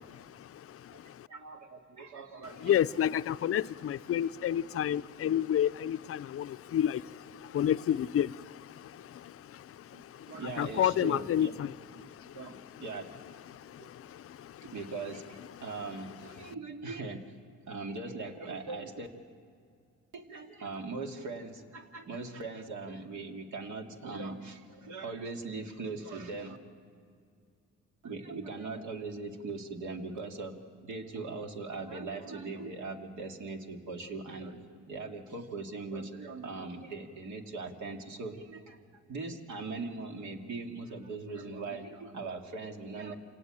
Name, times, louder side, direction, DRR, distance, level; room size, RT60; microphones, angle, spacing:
voice 1, 0.4-1.3 2.6-11.7 12.0-12.4 13.5-14.7, left 10 dB, 50° left, 14 dB, 0.5 m, -31 dB
voice 2, 1.3-2.8 9.9-11.5 12.3-13.1 13.8-13.9 14.6-17.2 17.7-19.1 20.1-26.6 28.0-30.6 30.8-43.2, right 3 dB, 70° right, 3 dB, 2.4 m, -40 dB
27.5 x 18.0 x 9.0 m, 2.3 s
cardioid pair, 90°, 30 cm